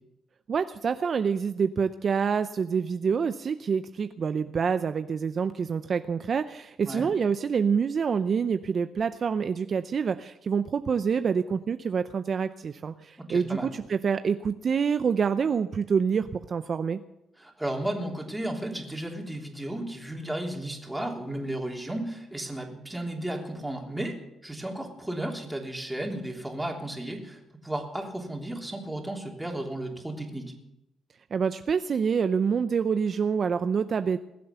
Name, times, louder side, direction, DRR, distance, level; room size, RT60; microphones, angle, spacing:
voice 1, 0.5-17.0 31.3-34.2, right 6 dB, 50° right, 11 dB, 0.6 m, -27 dB
voice 2, 13.2-13.7 17.4-30.4, right 1 dB, 10° right, 1 dB, 3.2 m, -34 dB
21.0 x 7.8 x 7.0 m, 0.89 s
cardioid pair, 90°, 0 cm